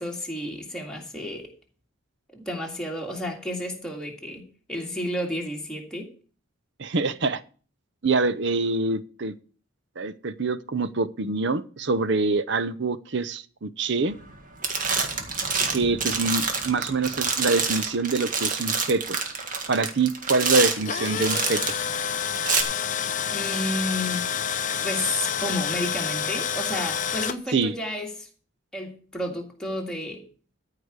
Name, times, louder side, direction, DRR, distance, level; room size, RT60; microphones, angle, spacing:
voice 1, 0.0-1.5 2.3-6.1 23.3-24.3 24.8-28.3 28.7-30.2, left 1 dB, 5° left, 2.0 m, -31 dB
voice 2, 6.8-7.4 8.0-9.3 10.0-14.1 15.7-19.2 19.7-21.6 27.5-27.7, right 3 dB, 55° right, 0.7 m, -25 dB
sound 1, 14.1-14.4 14.6-21.9 22.4-22.6, right 5 dB, 40° right, 1.8 m, -27 dB
Tools, 20.6-27.4, left 7 dB, 35° left, 0.6 m, -28 dB
13.5 x 4.9 x 8.1 m
head